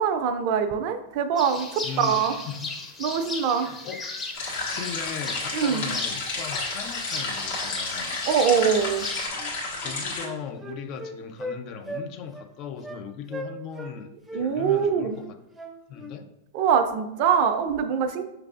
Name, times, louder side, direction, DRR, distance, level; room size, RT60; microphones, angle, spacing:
voice 1, 0.0-2.3 3.0-3.7 5.5-5.9 8.3-9.0 14.3-15.2 16.5-18.2, right 7 dB, 50° right, 9 dB, 0.5 m, -23 dB
sound 1, 1.4-9.3, left 3 dB, 20° left, 0.8 m, -36 dB
voice 2, 1.8-2.8 3.5-4.0 4.4-8.2 9.8-15.4 15.9-16.3, left 7 dB, 45° left, 8 dB, 0.5 m, -38 dB
sound 2, 4.3-10.2, left 3 dB, 70° left, 1.6 m, -32 dB
Wind instrument woodwind instrument, 9.4-9.5 9.8-11.6 11.9-12.1 12.3-12.5 12.8-13.0 13.3-13.9 14.3-16.2, equal, 10° right, 0.6 m, -37 dB
5.7 x 3.3 x 2.5 m, 0.88 s
hypercardioid pair, 100°, 0 cm